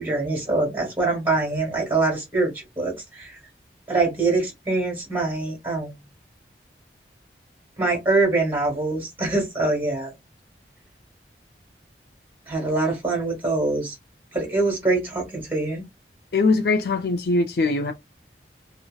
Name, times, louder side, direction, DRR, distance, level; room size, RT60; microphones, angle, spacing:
voice 1, 0.0-3.4 3.9-6.0 7.8-10.1 12.5-13.9 14.3-15.8, right 3 dB, 10° right, 1.0 m, -24 dB
voice 2, 16.3-17.9, left 3 dB, 65° left, 0.5 m, -21 dB
2.6 x 2.1 x 2.3 m
head